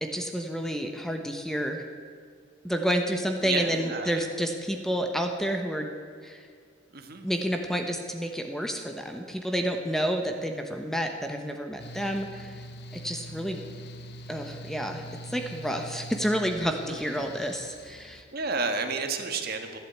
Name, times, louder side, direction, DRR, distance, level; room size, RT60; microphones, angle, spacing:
voice 1, 0.0-1.9 2.6-5.9 6.2-6.4 7.2-12.6 12.9-13.6 14.3-18.3, equal, ahead, 4 dB, 1.0 m, -30 dB
voice 2, 3.4-4.2 6.9-7.3 16.9-17.3 18.3-19.8, right 4 dB, 55° right, 6 dB, 1.5 m, -31 dB
Mechanical fan, 11.8-18.2, equal, 60° left, 1.0 m, -43 dB
14.5 x 11.5 x 8.5 m, 2.2 s
head